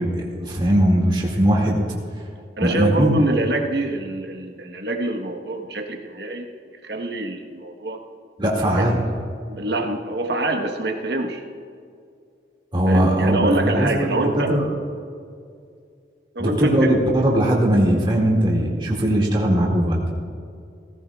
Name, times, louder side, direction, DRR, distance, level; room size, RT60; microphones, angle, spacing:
voice 1, 0.0-1.8 2.6-3.2 8.4-9.0 12.7-14.7 16.4-20.1, right 1 dB, 25° right, -3 dB, 2.3 m, -19 dB
voice 2, 2.6-6.5 6.8-8.0 8.8-8.9 9.5-11.4 12.9-14.5 16.3-16.9, right 2 dB, 60° right, 3 dB, 1.3 m, -25 dB
17.5 x 15.5 x 2.4 m, 2.3 s
head